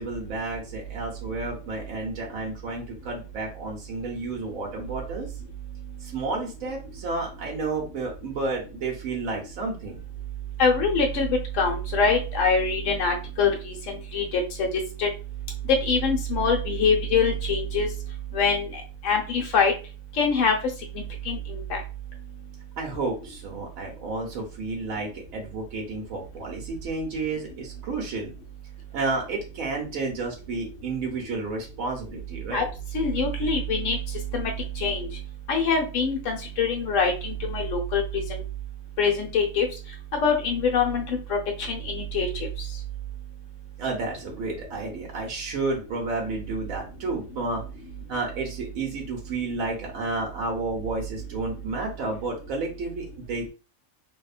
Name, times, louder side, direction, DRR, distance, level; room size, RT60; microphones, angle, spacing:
voice 1, 0.0-5.3 6.0-10.0 22.8-28.3 28.9-32.6 43.8-47.6 48.1-53.5, right 3 dB, 80° right, 0 dB, 1.2 m, -31 dB
voice 2, 10.6-14.7 15.0-15.1 15.7-17.9 18.3-18.7 19.0-19.7 20.2-20.5 20.9-21.8 32.5-32.6 32.9-34.0 34.3-34.5 34.8-35.1 35.5-38.4 39.0-39.7 40.2-42.3, left 4 dB, 70° left, 2 dB, 1.0 m, -24 dB
2.7 x 2.1 x 2.4 m, 0.32 s
omnidirectional pair, 1.4 m